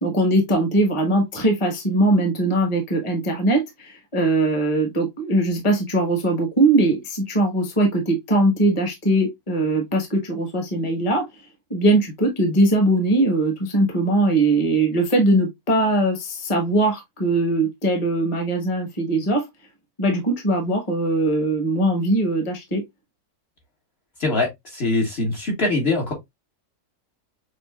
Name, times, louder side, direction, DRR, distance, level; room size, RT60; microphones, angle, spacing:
voice 1, 0.0-11.2 11.7-19.4 20.0-22.8, right 2 dB, 20° left, 1.1 m, -21 dB
voice 2, 24.2-26.1, left 2 dB, 45° left, 1.4 m, -23 dB
6.5 x 2.5 x 2.3 m
omnidirectional pair, 1.6 m